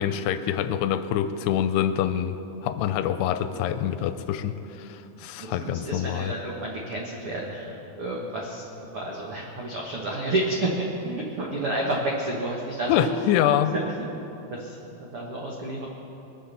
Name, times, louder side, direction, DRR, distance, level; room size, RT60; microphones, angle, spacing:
voice 1, 0.0-2.4 2.6-6.3 12.9-13.7, left 10 dB, 80° left, 10 dB, 2.6 m, -25 dB
voice 2, 5.4-13.0 13.7-13.9 14.5-15.9, right 2 dB, 90° right, -2 dB, 1.2 m, -30 dB
23.0 x 7.7 x 6.8 m, 3.0 s
omnidirectional pair, 4.9 m